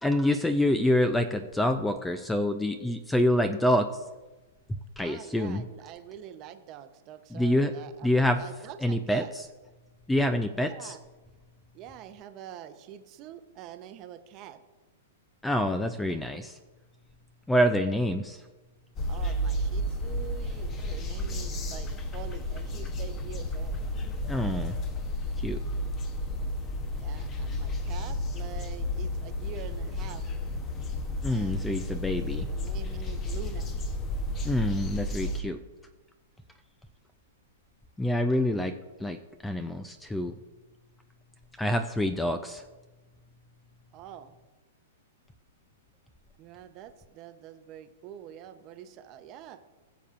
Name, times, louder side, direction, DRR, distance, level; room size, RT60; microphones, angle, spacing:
voice 1, 0.0-4.0 5.0-5.6 7.3-7.7 8.0-8.4 8.8-9.5 10.1-10.9 15.4-16.6 17.5-18.4 24.3-24.8 25.4-25.6 31.2-32.5 34.4-35.6 38.0-38.7 39.0-39.2 39.4-40.3 41.6-42.6, left 1 dB, 5° left, 9 dB, 0.4 m, -26 dB
voice 2, 5.0-9.3 10.5-11.0 11.7-14.6 19.1-23.8 27.0-30.3 31.3-31.9 32.2-33.7 43.9-44.4 46.4-49.6, right 10 dB, 30° right, 9 dB, 0.7 m, -45 dB
sound 1, 19.0-35.4, left 1 dB, 20° left, 0.9 m, -32 dB
20.5 x 7.1 x 2.5 m, 1.2 s
hypercardioid pair, 155°, 0 cm